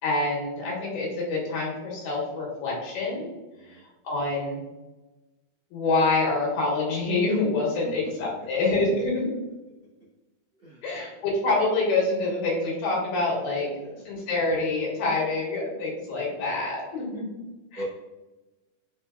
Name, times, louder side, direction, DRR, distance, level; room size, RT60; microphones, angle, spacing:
voice 1, 0.0-3.3 4.0-4.6 5.7-9.3 10.8-13.7 14.1-17.3 17.7-17.8, left 3 dB, 80° left, -3 dB, 2.9 m, -26 dB
voice 2, 3.5-3.8 7.8-7.9 8.3-8.5 10.6-10.8 13.8-14.0 16.3-16.4 17.7-17.8, left 1 dB, 65° right, -10 dB, 1.1 m, -42 dB
5.5 x 3.9 x 2.3 m, 1.1 s
omnidirectional pair, 4.0 m